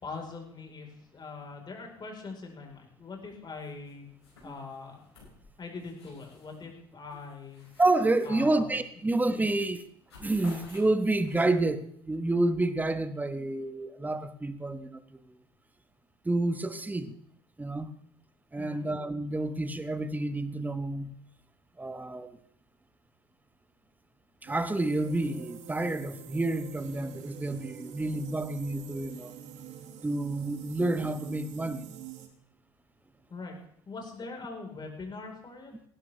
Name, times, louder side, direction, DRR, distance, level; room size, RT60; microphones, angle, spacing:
voice 1, 0.0-4.1 4.4-5.0 5.6-7.7 8.2-8.7 9.0-9.1 18.5-18.9 33.3-33.6 33.9-35.7, left 4 dB, 30° left, 4.3 m, -42 dB
sound 1, 3.6-3.9 4.2-6.7 7.1-9.0 9.3-9.6 9.8-11.8, left 3 dB, 90° left, 5.7 m, -54 dB
voice 2, 7.8-9.8 10.2-15.2 16.2-17.1 17.6-17.9 18.5-21.2 21.8-22.4 24.4-29.3 30.0-31.8, right 2 dB, 10° right, 1.2 m, -29 dB
sound 2, 24.4-32.3, right 8 dB, 60° right, 2.0 m, -46 dB
17.5 x 12.0 x 3.4 m
hypercardioid pair, 65°, 14 cm